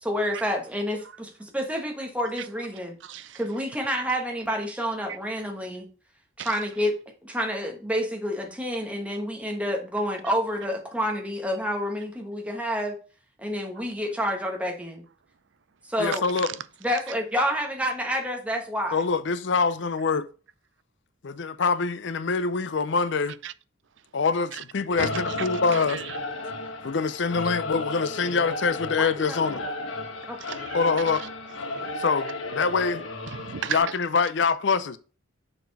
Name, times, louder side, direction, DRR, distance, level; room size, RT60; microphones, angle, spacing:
voice 1, 0.0-3.0 3.3-5.9 6.4-6.9 7.2-13.0 13.4-15.0 15.9-16.3 16.8-19.0 29.0-29.6 30.3-30.4, equal, 5° right, 1.3 m, -29 dB
voice 2, 3.0-3.4 6.4-6.5 16.4-16.5 23.4-23.5 24.5-24.6 25.0-26.2 30.4-30.9 31.7-31.9 33.3-33.8, right 8 dB, 65° right, 0.5 m, -35 dB
voice 3, 16.0-16.5 18.9-20.3 21.2-23.4 24.1-26.0 26.8-29.6 30.7-31.2 32.0-33.0 33.7-35.0, left 4 dB, 60° left, 0.5 m, -25 dB
Singing / Musical instrument, 24.9-33.8, left 2 dB, 80° left, 1.2 m, -34 dB
6.9 x 4.3 x 4.6 m
head